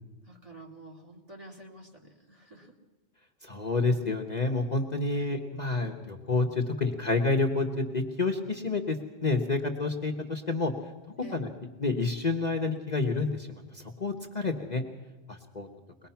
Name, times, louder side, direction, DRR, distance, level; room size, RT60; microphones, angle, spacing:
voice 1, 0.2-2.8 5.1-5.3 11.2-11.4, right 1 dB, 25° right, 1 dB, 2.6 m, -49 dB
voice 2, 3.4-10.7 11.3-11.5 11.8-14.8 15.3-15.7, left 3 dB, 35° left, 3 dB, 1.2 m, -29 dB
23.0 x 20.0 x 5.8 m, 1.2 s
omnidirectional pair, 1.3 m